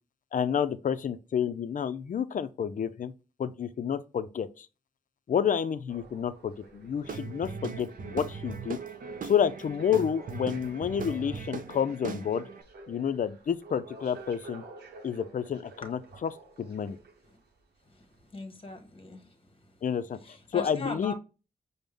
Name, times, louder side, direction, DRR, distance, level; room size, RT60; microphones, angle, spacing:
voice 1, 0.3-3.1 3.4-4.7 5.3-8.8 9.2-12.4 12.9-14.6 15.0-16.3 16.6-17.0 19.8-21.1, left 8 dB, 55° left, 0.4 m, -30 dB
sound 1, 5.9-17.5 18.1-18.2, right 3 dB, 90° right, 0.7 m, -50 dB
Guitar / Drum, 7.0-12.6, right 5 dB, 55° right, 0.5 m, -39 dB
voice 2, 17.9-19.8 20.2-21.1, left 2 dB, 35° left, 1.0 m, -41 dB
5.1 x 2.1 x 3.4 m
cardioid pair, 50°, 16 cm